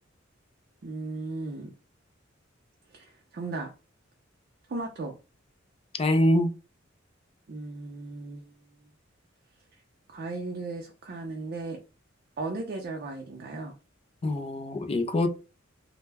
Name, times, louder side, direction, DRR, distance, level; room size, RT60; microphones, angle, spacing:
voice 1, 0.8-1.7 2.9-3.7 4.7-5.2 7.5-8.8 10.1-11.8 12.4-13.8, right 3 dB, 50° right, 0.4 m, -36 dB
voice 2, 6.0-6.5 14.2-15.3, left 1 dB, 30° left, 0.4 m, -24 dB
2.2 x 2.0 x 3.3 m
head